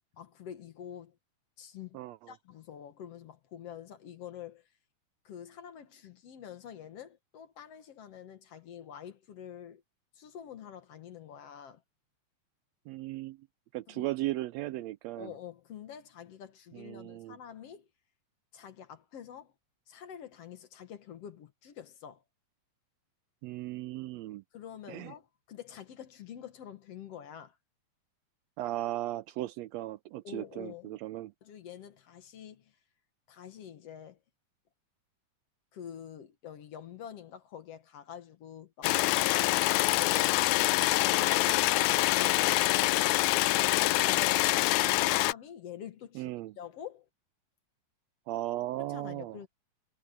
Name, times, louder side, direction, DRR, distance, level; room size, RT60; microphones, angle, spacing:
voice 1, 0.2-1.2 1.6-2.0 2.3-4.7 5.2-9.8 10.1-11.8 13.9-14.1 15.2-17.9 18.5-19.5 19.9-22.2 24.5-27.6 30.2-31.0 31.4-32.7 33.3-34.2 35.7-40.4 41.0-47.1 48.8-49.5, left 9 dB, 60° left, 2.2 m, -46 dB
voice 2, 1.9-2.3 12.9-13.4 13.7-15.3 16.7-17.4 23.4-24.4 24.9-25.1 28.6-31.3 46.1-46.5 48.3-49.4, right 16 dB, 80° right, 1.6 m, -36 dB
sound 1, 38.8-45.3, left 19 dB, 80° left, 1.8 m, -25 dB
omnidirectional pair, 3.3 m